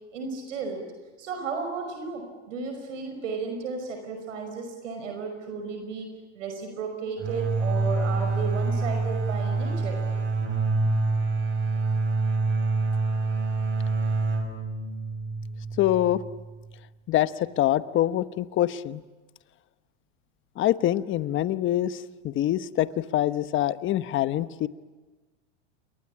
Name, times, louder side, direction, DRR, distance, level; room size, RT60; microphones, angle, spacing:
voice 1, 0.1-0.8 1.2-6.1 6.3-10.0, right 4 dB, 85° right, 4 dB, 5.7 m, -34 dB
sound 1, 7.2-16.7, right 3 dB, 30° right, 5.9 m, -26 dB
voice 2, 15.8-16.2 17.1-19.0 20.6-24.7, left 13 dB, 35° left, 13 dB, 1.1 m, -25 dB
28.5 x 23.0 x 8.6 m, 1.2 s
supercardioid pair, 120°, 37 cm